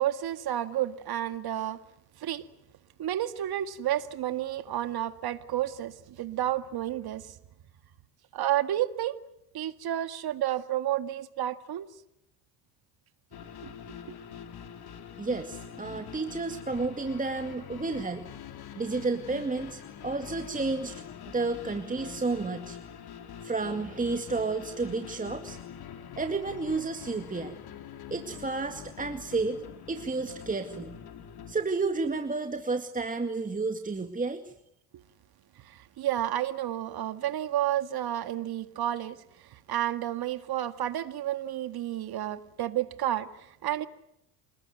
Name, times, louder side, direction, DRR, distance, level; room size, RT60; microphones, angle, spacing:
voice 1, 0.0-1.8 2.2-2.5 3.0-7.4 8.3-9.2 9.5-11.9 13.9-14.0 35.6-39.2 39.5-43.9, right 12 dB, 55° right, 11 dB, 2.0 m, -31 dB
sound 1, 13.3-31.5, left 8 dB, 55° left, 3.8 m, -44 dB
voice 2, 15.2-18.2 18.8-21.0 21.3-22.8 23.4-25.6 26.2-27.6 28.1-29.6 29.9-30.9 31.5-34.5, right 3 dB, 15° right, 6 dB, 2.1 m, -31 dB
28.0 x 20.0 x 9.4 m, 0.81 s
supercardioid pair, 80°, 44 cm